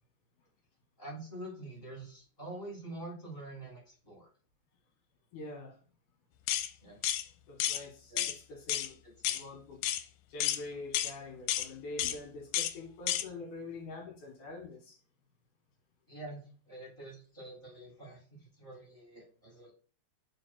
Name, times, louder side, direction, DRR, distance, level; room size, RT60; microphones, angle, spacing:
voice 1, 1.0-4.3 6.8-7.0 8.1-8.4 9.0-9.2 16.1-19.7, right 2 dB, 15° left, -5 dB, 2.7 m, -46 dB
voice 2, 5.3-5.8 7.5-9.0 9.3-9.8 10.3-15.0, left 2 dB, 65° left, 1 dB, 3.1 m, -45 dB
sound 1, 6.5-6.7 7.0-7.2 7.6-7.8 8.2-8.4 8.7-8.9 9.2-9.4 9.8-10.0 10.4-10.6 10.9-11.1 11.5-11.7 12.0-12.2 12.5-12.7 13.1-13.2, left 12 dB, 90° left, 2.4 m, -31 dB
4.8 x 4.8 x 5.8 m, 0.40 s
omnidirectional pair, 4.1 m